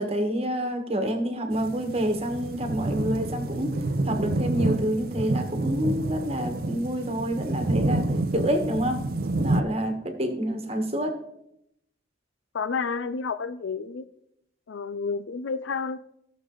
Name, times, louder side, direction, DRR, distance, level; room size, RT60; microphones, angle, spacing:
voice 1, 0.0-3.7 4.0-8.1 8.3-9.0 9.4-11.2, equal, 30° right, 5 dB, 1.3 m, -28 dB
sound 1, 1.5-9.6, right 2 dB, 50° right, 0.6 m, -28 dB
voice 2, 12.5-14.1 14.7-16.0, left 5 dB, 80° left, 14 dB, 0.5 m, -30 dB
15.5 x 6.7 x 3.8 m, 0.78 s
head